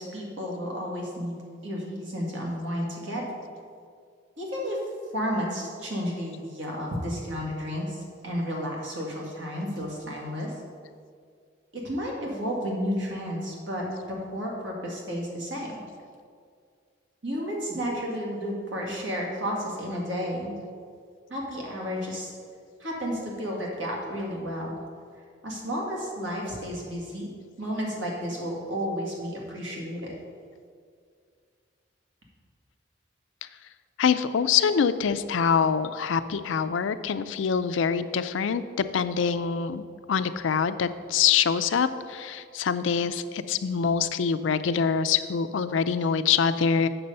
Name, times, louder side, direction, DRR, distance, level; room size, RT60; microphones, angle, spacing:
voice 1, 0.0-3.3 4.4-4.8 5.1-10.5 11.7-15.7 17.2-20.6 21.3-22.3 22.8-24.8 25.4-27.3 27.6-30.1, equal, 80° right, -2 dB, 1.9 m, -32 dB
voice 2, 34.0-46.9, left 6 dB, 80° left, 12 dB, 0.4 m, -25 dB
7.9 x 6.1 x 5.4 m, 2.2 s
head